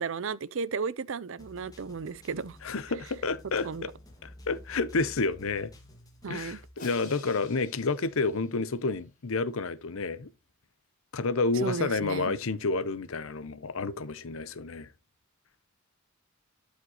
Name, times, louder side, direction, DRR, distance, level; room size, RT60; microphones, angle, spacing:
voice 1, 0.0-2.6 3.6-3.9 6.2-6.6 11.5-12.3, right 5 dB, 60° right, 0.5 m, -34 dB
sound 1, 1.4-6.7, left 1 dB, 15° left, 1.8 m, -51 dB
voice 2, 2.6-3.9 4.2-5.7 6.3-10.3 11.1-14.9, left 3 dB, 65° left, 0.7 m, -30 dB
Crash cymbal, 6.8-9.0, left 4 dB, 40° left, 3.9 m, -50 dB
12.0 x 5.1 x 3.0 m
head